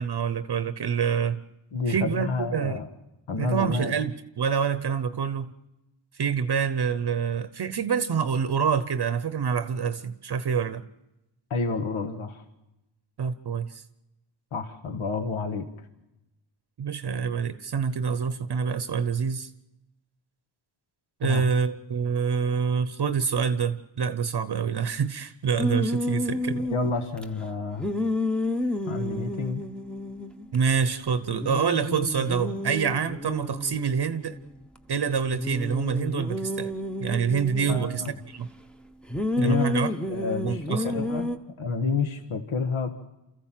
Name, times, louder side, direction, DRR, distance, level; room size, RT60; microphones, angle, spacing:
voice 1, 0.0-1.4 1.9-2.8 3.4-5.5 6.1-10.8 13.2-13.8 16.8-19.5 21.2-26.7 30.5-34.4 34.9-36.7 37.0-38.5 39.4-39.9 40.4-41.0, right 6 dB, 50° right, 12 dB, 0.8 m, -26 dB
voice 2, 1.7-2.9 3.3-3.9 11.5-12.4 14.5-15.7 21.2-21.4 26.7-27.9 28.9-29.6 37.7-38.1 39.4-39.7 40.1-42.9, left 4 dB, 75° left, 7 dB, 1.6 m, -29 dB
sound 1, 25.6-27.2 27.8-30.7 30.9-31.0 31.3-34.8 35.3-38.1 39.1-41.4, left 1 dB, ahead, 0.9 m, -30 dB
28.5 x 14.5 x 7.5 m, 0.95 s
wide cardioid pair, 115°, 49 cm